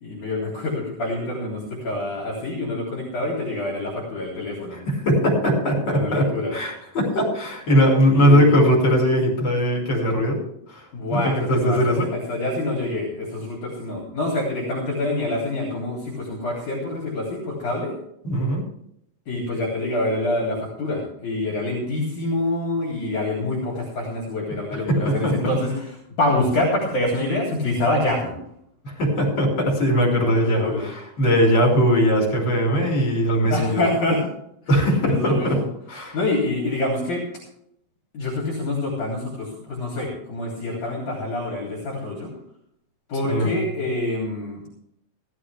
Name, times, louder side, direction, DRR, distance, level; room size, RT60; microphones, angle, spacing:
voice 1, 0.0-4.8 5.9-6.6 8.1-8.5 10.9-17.9 19.3-28.3 30.1-30.9 33.5-34.2 35.0-35.6 36.1-37.2 38.1-42.3 43.1-44.6, left 2 dB, 55° left, -3 dB, 4.3 m, -26 dB
voice 2, 4.7-10.4 10.7-12.1 18.2-18.6 24.9-25.4 28.8-33.8 34.7-35.6 35.9-36.2 43.3-43.6, equal, 30° left, -2 dB, 5.7 m, -20 dB
16.0 x 13.5 x 3.4 m, 0.73 s
omnidirectional pair, 4.3 m